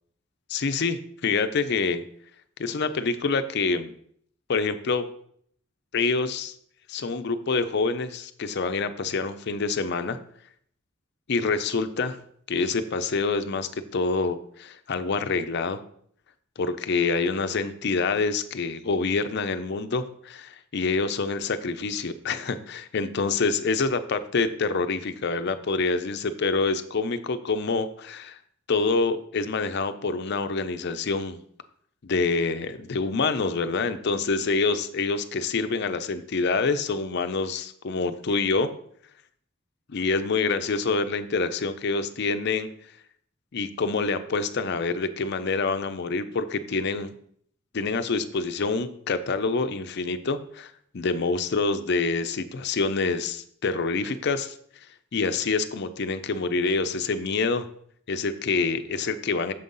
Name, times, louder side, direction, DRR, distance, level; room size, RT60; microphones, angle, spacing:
voice 1, 0.5-2.0 2.6-3.9 4.5-5.0 5.9-6.5 6.9-10.2 11.3-12.2 12.5-15.8 16.6-28.4 28.7-31.4 32.0-38.7 39.9-42.7 43.5-47.1 47.7-54.6 55.1-57.7 58.1-59.5, left 4 dB, 55° left, 10 dB, 0.5 m, -26 dB
6.7 x 3.9 x 5.4 m, 0.64 s
head